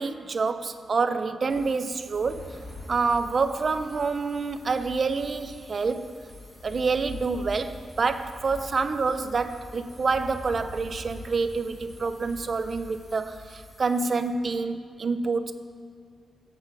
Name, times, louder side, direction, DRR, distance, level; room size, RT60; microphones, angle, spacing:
voice 1, 0.0-2.6 2.9-6.1 6.6-15.5, right 4 dB, 35° right, 10 dB, 0.5 m, -27 dB
sound 1, 1.5-14.3, left 2 dB, 15° left, 2.1 m, -51 dB
sound 2, 2.2-13.1, left 2 dB, 45° left, 2.9 m, -45 dB
14.5 x 7.6 x 4.8 m, 2.3 s
wide cardioid pair, 165°, 0 cm